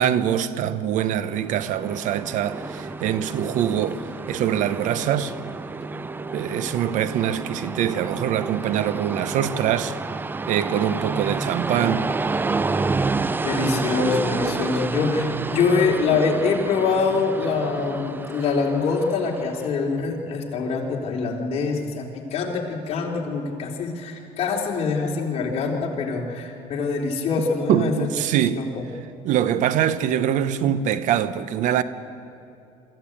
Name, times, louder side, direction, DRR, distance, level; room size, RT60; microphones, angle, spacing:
voice 1, 0.0-5.3 6.3-10.0 10.5-12.1 27.7-28.6 29.2-31.8, right 10 dB, 60° right, 0.9 m, -23 dB
Train, 1.1-19.8, right 3 dB, 15° right, 0.4 m, -29 dB
voice 2, 13.4-28.1 28.6-28.8, left 4 dB, 45° left, 3.4 m, -24 dB
24.0 x 14.5 x 8.8 m
cardioid pair, 130°, 14 cm